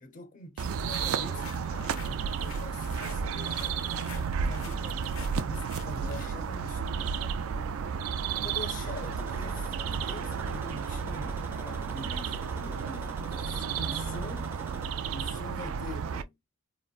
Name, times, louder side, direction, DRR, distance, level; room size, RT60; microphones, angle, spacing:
voice 1, 0.0-4.1 4.5-5.1 5.4-7.5 8.4-14.6 15.1-16.4, left 2 dB, 40° left, 0.5 m, -45 dB
sound 1, 0.6-16.2, right 6 dB, 90° right, 0.4 m, -32 dB
sound 2, 0.9-6.3, left 5 dB, 85° left, 0.9 m, -46 dB
sound 3, 8.9-14.9, right 2 dB, 10° right, 0.4 m, -46 dB
3.8 x 2.0 x 2.3 m
head